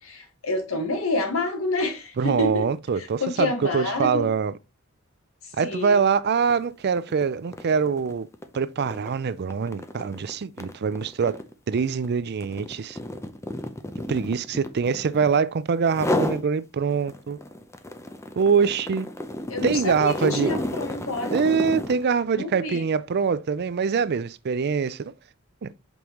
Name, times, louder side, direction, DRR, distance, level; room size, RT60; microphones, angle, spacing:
voice 1, 0.0-2.7 3.0-4.3 5.6-6.0 19.5-21.4 22.3-22.8, left 2 dB, 75° left, 1.5 m, -28 dB
voice 2, 2.2-4.5 5.6-8.3 8.5-11.4 11.7-13.0 14.1-17.4 18.4-19.1 19.6-20.6 21.3-25.1 25.6-25.7, right 6 dB, 50° right, 0.4 m, -24 dB
sound 1, 6.4-6.6 7.0-15.4 15.9-16.5 16.9-22.1, left 1 dB, 15° left, 0.6 m, -32 dB
6.2 x 5.3 x 3.0 m
head